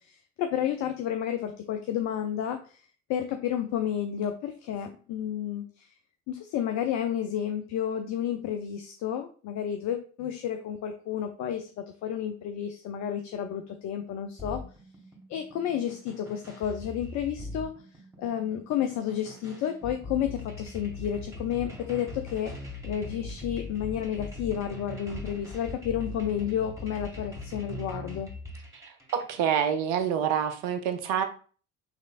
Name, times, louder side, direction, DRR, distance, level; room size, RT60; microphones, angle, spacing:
voice 1, 0.1-2.8 3.1-5.9 6.3-14.6 15.3-17.7 18.2-22.5 22.8-28.3, left 9 dB, 45° left, 6 dB, 0.6 m, -31 dB
sound 1, 14.4-29.3, left 2 dB, 10° right, 2.0 m, -41 dB
voice 2, 29.1-31.2, right 8 dB, 65° right, 8 dB, 0.8 m, -27 dB
6.7 x 3.1 x 2.5 m, 0.41 s
hypercardioid pair, 65°, 38 cm